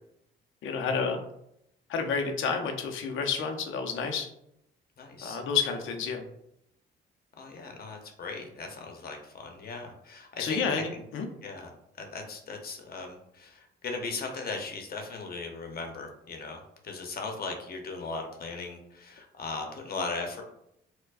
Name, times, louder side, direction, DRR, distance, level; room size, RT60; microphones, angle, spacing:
voice 1, 0.6-1.2 1.9-4.3 5.2-6.2 10.4-11.3, left 5 dB, 80° left, 4 dB, 0.6 m, -30 dB
voice 2, 5.0-5.4 7.4-11.0 11.4-11.7 12.0-20.4, left 3 dB, 50° left, 3 dB, 0.8 m, -38 dB
4.5 x 2.2 x 2.4 m, 0.77 s
cardioid pair, 90°, 20 cm